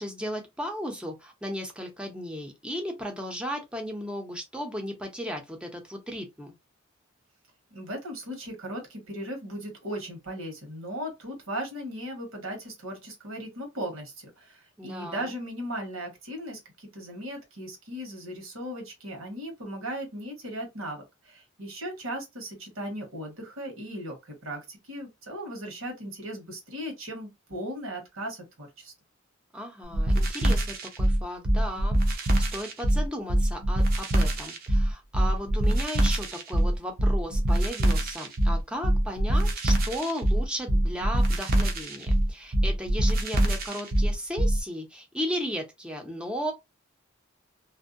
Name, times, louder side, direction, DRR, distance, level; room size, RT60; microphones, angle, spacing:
voice 1, 0.0-6.5 14.8-15.3 29.5-46.5, equal, 5° right, 0.6 m, -35 dB
voice 2, 7.7-28.9, equal, 85° right, 1.3 m, -37 dB
sound 1, 29.9-44.6, right 1 dB, 45° right, 0.6 m, -24 dB
2.6 x 2.1 x 2.5 m
head